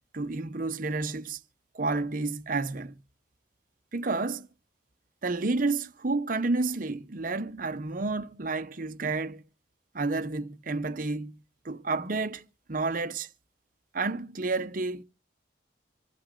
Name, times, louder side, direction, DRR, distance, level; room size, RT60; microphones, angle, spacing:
voice 1, 0.1-1.4 1.7-3.0 3.9-4.5 5.2-9.4 9.9-11.4 11.6-13.3 13.9-15.0, right 3 dB, 50° right, 0.8 m, -30 dB
26.5 x 9.5 x 3.7 m
head